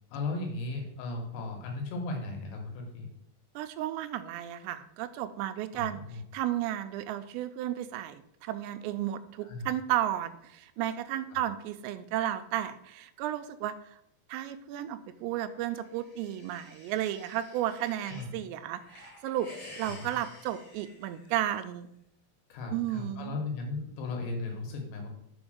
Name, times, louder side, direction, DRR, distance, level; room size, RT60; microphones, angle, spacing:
voice 1, 0.1-3.1 5.7-6.2 9.4-9.7 11.3-11.4 18.1-18.3 19.9-20.2 22.5-25.1, left 3 dB, 75° left, 2 dB, 3.5 m, -36 dB
voice 2, 3.6-6.0 6.3-14.0 14.3-21.9 22.7-23.4, right 12 dB, 85° right, 10 dB, 2.8 m, -33 dB
sound 1, 15.6-18.3 18.7-21.6, left 1 dB, 45° left, 1.3 m, -51 dB
6.2 x 5.1 x 6.4 m, 0.74 s
omnidirectional pair, 5.0 m